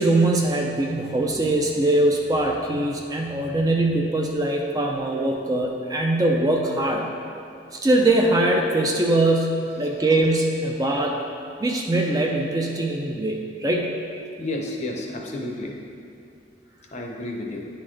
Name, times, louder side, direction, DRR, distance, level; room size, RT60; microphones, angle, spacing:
voice 1, 0.0-7.1 7.7-11.2 11.6-13.9, right 2 dB, 20° right, 0 dB, 0.4 m, -22 dB
voice 2, 14.4-15.8 16.9-17.7, left 1 dB, 40° left, 0 dB, 0.6 m, -31 dB
9.6 x 3.9 x 3.2 m, 2.5 s
head